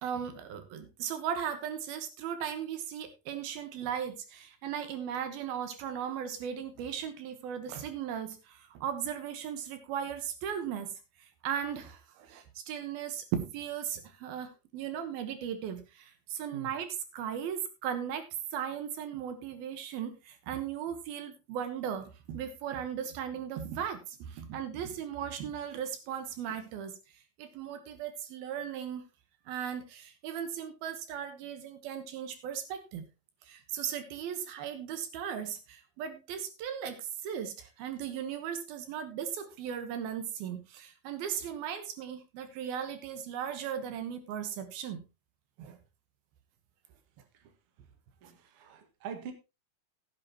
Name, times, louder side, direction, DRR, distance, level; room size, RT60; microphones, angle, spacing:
voice 1, 0.0-10.9 11.4-18.2 18.5-27.0 27.4-29.0 29.5-33.1 33.5-45.0 45.6-45.8, right 8 dB, 75° right, 9 dB, 3.0 m, -37 dB
voice 2, 48.2-49.3, right 6 dB, 45° right, 6 dB, 2.1 m, -43 dB
16.0 x 9.0 x 2.9 m, 0.27 s
omnidirectional pair, 4.5 m